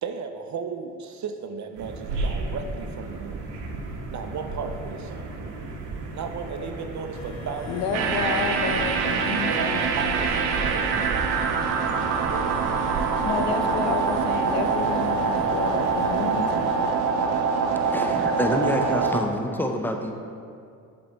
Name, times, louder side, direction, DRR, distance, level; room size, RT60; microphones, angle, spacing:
voice 1, 0.0-3.5 4.1-5.3 6.1-8.6 9.0-11.1 12.3-12.8, right 5 dB, 40° right, 6 dB, 0.5 m, -35 dB
sound 1, 1.7-16.5, right 2 dB, 70° right, 0.9 m, -35 dB
sound 2, 7.1-16.9, left 4 dB, 35° left, 0.8 m, -42 dB
voice 2, 7.7-9.9 13.2-16.9, left 6 dB, 70° left, 6 dB, 0.6 m, -30 dB
sound 3, 7.9-19.2, right 5 dB, 85° right, 0.6 m, -24 dB
voice 3, 17.7-20.1, left 1 dB, 5° left, 4 dB, 0.5 m, -27 dB
7.6 x 3.1 x 3.9 m, 2.4 s
hypercardioid pair, 45°, 45 cm